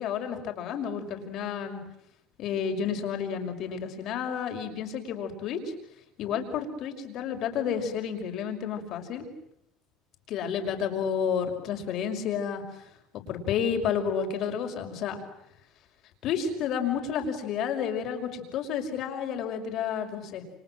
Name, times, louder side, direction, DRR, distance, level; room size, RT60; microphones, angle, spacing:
voice 1, 0.0-1.8 2.4-5.7 6.2-9.3 10.3-12.6 13.1-15.2 16.2-20.4, left 7 dB, 55° left, 5 dB, 5.8 m, -31 dB
29.5 x 26.0 x 7.7 m, 0.78 s
supercardioid pair, 115°, 0 cm